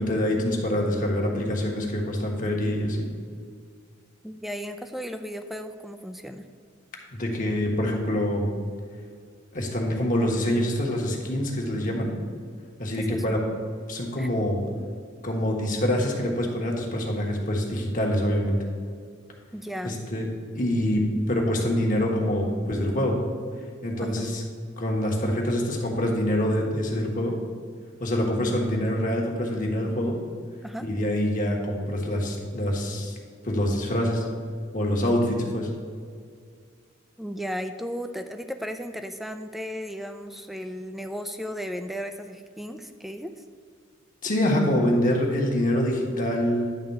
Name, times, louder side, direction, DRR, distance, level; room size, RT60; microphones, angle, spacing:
voice 1, 0.0-3.1 7.1-8.5 9.5-12.1 12.8-13.4 13.9-14.6 15.2-18.6 19.8-20.3 20.5-23.2 23.8-24.4 24.8-27.4 28.0-30.2 30.8-33.1 33.4-34.2 34.7-35.7 44.2-46.6, left 1 dB, 45° left, 0 dB, 1.5 m, -25 dB
voice 2, 4.2-6.4 13.1-13.2 14.2-14.3 19.5-20.0 24.0-24.3 30.6-30.9 37.2-43.3, equal, ahead, 8 dB, 0.4 m, -35 dB
10.5 x 3.7 x 6.7 m, 2.1 s
head